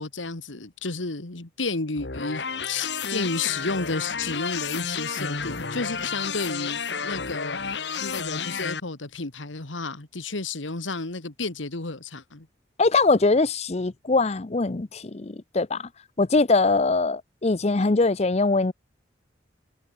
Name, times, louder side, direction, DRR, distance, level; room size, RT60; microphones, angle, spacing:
voice 1, 0.0-12.5, left 3 dB, 90° left, 1.9 m, -32 dB
sound 1, 2.0-8.8, left 5 dB, 65° left, 1.8 m, -31 dB
voice 2, 12.8-15.8 16.2-18.7, left 3 dB, 35° left, 0.6 m, -22 dB
head